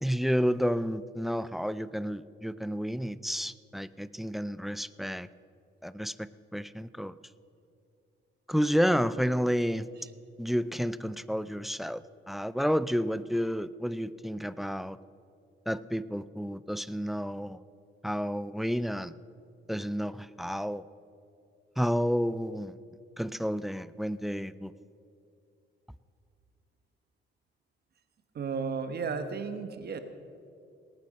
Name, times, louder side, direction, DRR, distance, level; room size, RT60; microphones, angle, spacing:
voice 1, 0.0-5.3 5.8-7.1 8.5-9.9 10.4-15.0 15.7-17.6 18.0-19.1 19.7-20.9 21.8-22.8 23.2-24.7, equal, ahead, 17 dB, 0.4 m, -30 dB
voice 2, 28.3-30.0, right 5 dB, 55° right, 9 dB, 1.2 m, -34 dB
18.5 x 8.9 x 6.5 m, 2.5 s
cardioid pair, 90°, 20 cm